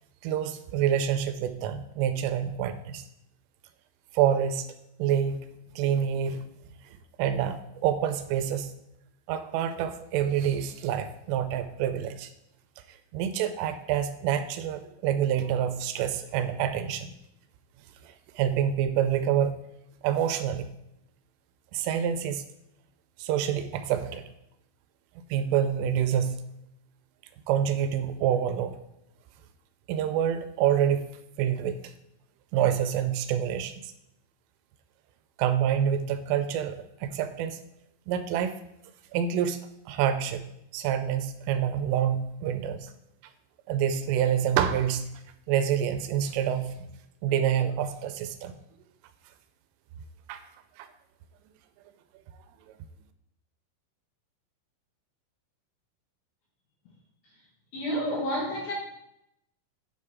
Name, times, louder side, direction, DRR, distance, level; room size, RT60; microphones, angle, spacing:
voice 1, 0.2-3.0 4.1-4.7 5.0-5.4 5.8-6.4 7.2-8.7 9.3-12.3 13.1-17.1 18.4-19.5 20.0-20.7 21.7-22.4 23.2-24.2 25.3-26.4 27.5-28.8 29.9-31.1 31.4-31.8 32.5-33.7 35.4-37.6 38.1-38.6 39.1-39.6 39.9-40.4 40.7-42.9 43.7-45.1 45.5-46.9 47.2-48.6 50.3-50.4 50.8-50.9, right 9 dB, 85° right, 9 dB, 3.1 m, -27 dB
voice 2, 57.7-58.7, equal, 65° left, -3 dB, 2.7 m, -29 dB
10.0 x 5.6 x 3.5 m, 0.80 s
omnidirectional pair, 5.7 m